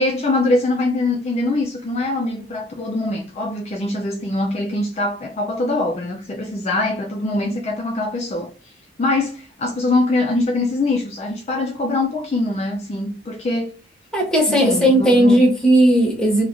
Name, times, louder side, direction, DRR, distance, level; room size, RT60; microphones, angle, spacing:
voice 1, 0.0-8.5 9.0-13.8 14.5-15.4, left 2 dB, 35° left, 0.4 m, -23 dB
voice 2, 14.1-16.4, right 1 dB, 5° left, 0.7 m, -15 dB
3.0 x 2.3 x 2.4 m
head